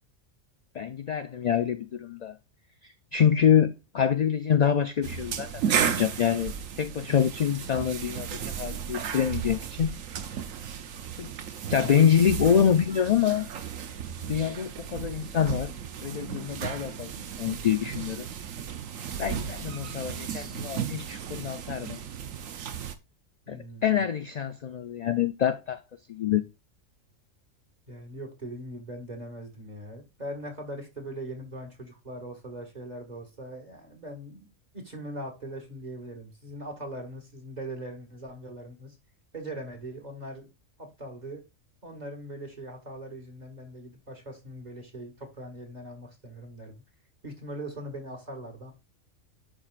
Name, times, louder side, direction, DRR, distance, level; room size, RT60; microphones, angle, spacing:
voice 1, 0.8-2.3 3.1-6.5 6.8-9.9 11.2-11.3 11.7-13.5 14.3-15.7 16.0-17.1 17.4-18.3 19.2-22.0 23.5-25.8 26.1-26.4, left 8 dB, 65° left, 0.4 m, -25 dB
sound 1, 5.0-22.9, right 8 dB, 90° right, 1.2 m, -34 dB
voice 2, 23.5-24.0 27.9-39.0 39.3-40.5 40.8-41.4 41.8-46.8 47.2-48.7, right 1 dB, 35° right, 1.9 m, -40 dB
11.5 x 4.5 x 2.4 m
omnidirectional pair, 1.3 m